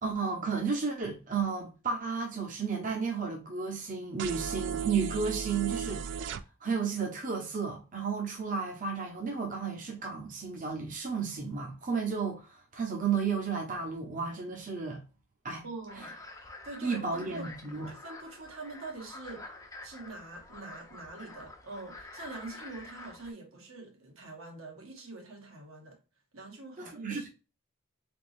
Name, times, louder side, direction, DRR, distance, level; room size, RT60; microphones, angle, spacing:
voice 1, 0.0-15.0 15.4-15.6 16.8-17.9 26.8-27.3, right 5 dB, 40° right, 0.8 m, -33 dB
sound 1, 4.2-6.4, right 8 dB, 55° right, 0.3 m, -35 dB
voice 2, 15.6-16.1 16.6-17.5 17.9-19.5 19.8-26.0 26.3-27.3, right 3 dB, 80° right, 1.3 m, -44 dB
sound 2, 15.9-23.3, left 2 dB, 15° left, 0.6 m, -48 dB
4.0 x 3.5 x 2.5 m
head